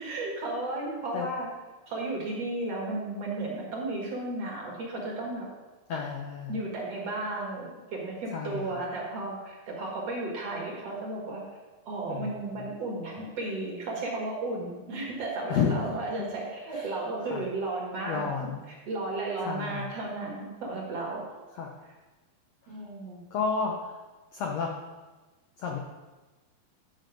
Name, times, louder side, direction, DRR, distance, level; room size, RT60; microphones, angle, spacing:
voice 1, 0.0-1.5 1.9-5.5 6.5-11.4 11.8-21.3 22.7-23.2, right 2 dB, 50° right, -2 dB, 2.4 m, -34 dB
voice 2, 5.9-6.6 8.3-8.8 12.1-12.6 15.5-15.8 16.7-16.9 17.3-17.4 18.1-18.6 19.4-19.9 21.6-21.7 22.7-22.8 23.3-23.9 24.3-24.7 25.6-25.8, left 6 dB, 85° left, 0 dB, 1.5 m, -31 dB
10.5 x 6.0 x 5.1 m, 1.2 s
omnidirectional pair, 4.4 m